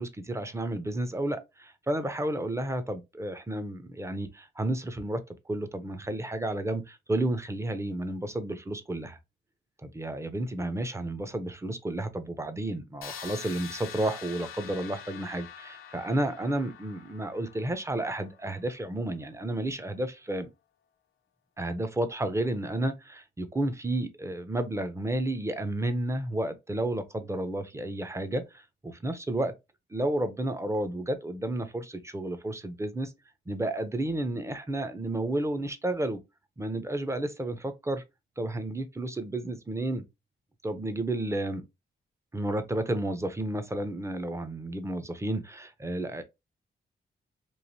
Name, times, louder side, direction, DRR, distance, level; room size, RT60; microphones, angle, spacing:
voice 1, 0.0-5.2 5.5-9.2 9.8-20.5 21.6-29.5 29.9-33.1 33.5-36.2 36.6-38.0 38.4-40.0 40.6-41.6 42.3-46.2, right 1 dB, 15° right, 0.5 m, -31 dB
sound 1, 13.0-18.8, left 8 dB, 80° left, 0.5 m, -45 dB
3.1 x 2.4 x 2.6 m
cardioid pair, 75°, 21 cm